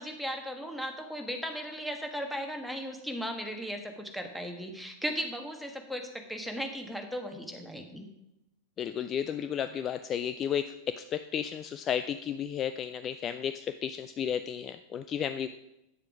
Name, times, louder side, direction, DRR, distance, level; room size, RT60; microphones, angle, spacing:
voice 1, 0.0-8.1, equal, ahead, 3 dB, 1.5 m, -37 dB
voice 2, 8.8-15.5, left 8 dB, 30° left, 11 dB, 0.4 m, -33 dB
9.4 x 7.5 x 4.8 m, 0.88 s
figure-of-eight pair, 90°, 0 cm